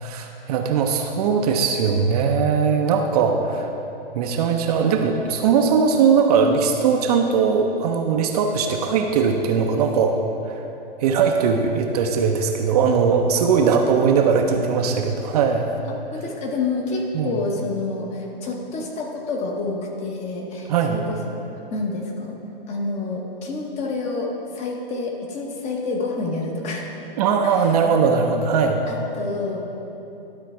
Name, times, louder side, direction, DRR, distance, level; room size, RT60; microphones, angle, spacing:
voice 1, 0.0-3.7 4.1-10.2 10.5-10.6 11.0-15.7 17.1-17.4 20.7-21.0 27.2-28.9, right 6 dB, 40° right, 4 dB, 0.5 m, -20 dB
voice 2, 13.5-14.0 14.4-14.6 15.9-21.4 21.7-22.4 22.7-26.9 27.4-27.7 28.9-29.6, left 3 dB, 20° left, 1 dB, 0.8 m, -28 dB
11.5 x 3.9 x 4.4 m, 2.9 s
hypercardioid pair, 130°, 30 cm